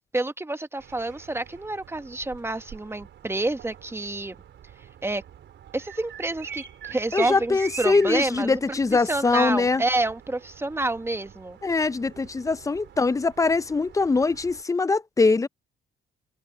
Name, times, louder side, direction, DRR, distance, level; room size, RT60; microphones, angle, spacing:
voice 1, 0.1-4.3 5.0-5.2 5.7-8.8 9.1-11.6, right 2 dB, 10° right, 1.1 m, -28 dB
sound 1, 0.8-14.6, right 9 dB, 70° right, 4.1 m, -44 dB
voice 2, 7.1-9.8 11.6-15.5, left 3 dB, 15° left, 0.5 m, -22 dB
open air
cardioid pair, 90°, 20 cm